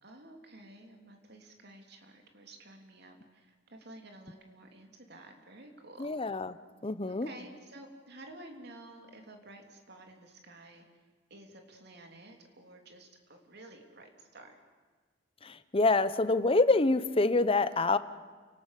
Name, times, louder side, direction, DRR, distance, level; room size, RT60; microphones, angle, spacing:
voice 1, 0.0-6.1 7.1-10.8 11.3-14.6, right 1 dB, 60° right, 4 dB, 3.2 m, -52 dB
voice 2, 6.0-6.5 6.8-7.3 15.4-18.0, left 3 dB, 30° left, 14 dB, 0.9 m, -26 dB
28.5 x 18.5 x 8.4 m, 1.4 s
head